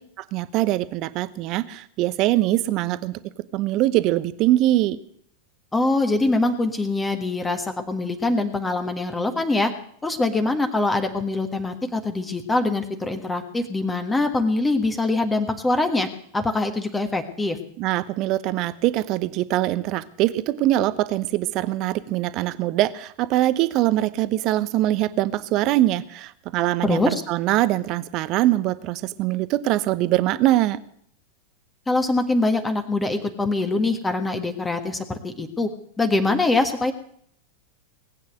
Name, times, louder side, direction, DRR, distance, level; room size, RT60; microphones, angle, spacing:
voice 1, 0.3-3.2 3.5-5.0 17.8-30.8, right 15 dB, 40° right, 15 dB, 0.9 m, -23 dB
voice 2, 5.7-9.7 10.0-16.1 16.3-17.6 26.8-27.2 31.9-35.7 36.0-36.9, left 2 dB, 10° left, 7 dB, 1.6 m, -23 dB
20.0 x 8.8 x 7.7 m, 0.64 s
figure-of-eight pair, 90°, 0 cm